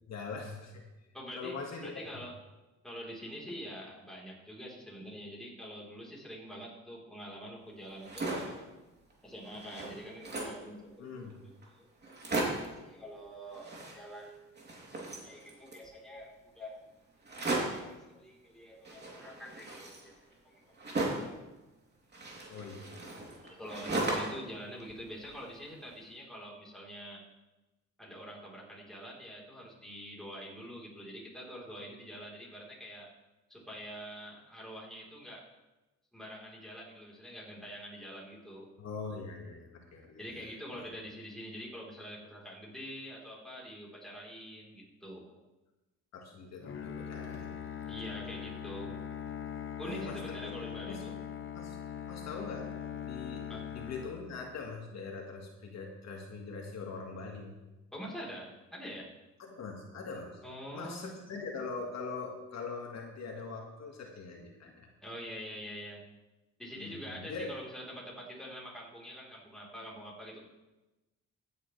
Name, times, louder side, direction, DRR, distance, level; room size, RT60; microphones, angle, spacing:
voice 1, 0.1-0.8 1.4-2.2 11.0-11.3 22.5-23.4 38.8-40.4 46.1-47.9 49.8-50.2 50.4-50.5 50.9-51.1 51.5-51.8 52.1-52.7 53.0-53.4 53.7-57.6 59.4-60.4 60.7-64.9 66.7-67.5, left 4 dB, 60° left, 0 dB, 1.8 m, -42 dB
voice 2, 1.1-2.4 2.8-8.6 9.2-11.9 12.8-14.7 15.0-16.9 17.4-20.5 23.4-27.2 28.0-33.1 33.5-35.5 36.1-38.7 40.2-45.4 47.9-49.0 49.8-51.2 53.5-53.7 57.9-59.2 60.4-61.1 65.0-66.1 66.6-70.4, equal, ahead, -4 dB, 3.8 m, -45 dB
sound 1, 7.9-8.6 9.1-9.2 9.4-10.7 11.3-11.4 11.6-11.7 12.0-12.8 13.5-14.3 14.6-15.9 17.2-17.9 18.9-21.4 22.1-24.5 24.8-25.7, right 2 dB, 35° right, 3.0 m, -36 dB
Bowed string instrument, 46.6-54.8, left 8 dB, 45° left, 1.0 m, -41 dB
15.0 x 9.4 x 3.3 m, 1.1 s
cardioid pair, 90°, 30 cm